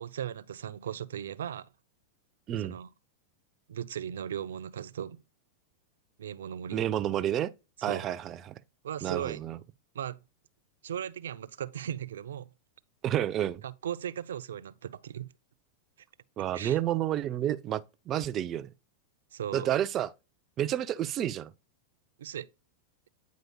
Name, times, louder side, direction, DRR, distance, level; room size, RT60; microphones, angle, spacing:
voice 1, 0.0-1.7 2.6-2.9 3.7-5.2 6.2-6.8 7.9-8.1 8.8-9.4 9.9-10.2 10.8-12.5 13.6-15.3 16.5-16.8 19.3-19.7 22.2-22.5, right 9 dB, 80° right, 0.5 m, -37 dB
voice 2, 6.7-7.5 7.8-8.6 9.0-9.6 13.0-13.6 16.4-18.7 19.5-20.1 20.6-21.5, right 11 dB, 35° right, 0.6 m, -30 dB
9.3 x 5.2 x 2.3 m
hypercardioid pair, 110°, 0 cm